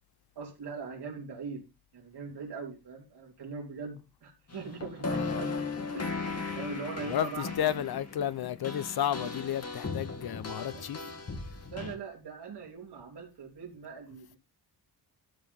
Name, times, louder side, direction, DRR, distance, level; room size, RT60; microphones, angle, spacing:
voice 1, 0.3-1.6 1.9-5.6 5.9-7.8 10.7-11.1 11.7-14.4, right 5 dB, 75° right, 3.3 m, -41 dB
sound 1, 4.5-11.9, left 4 dB, 40° left, 2.2 m, -37 dB
voice 2, 5.1-5.4 7.0-11.0, left 11 dB, 65° left, 0.8 m, -32 dB
13.0 x 5.6 x 5.5 m
wide cardioid pair, 165°, 40 cm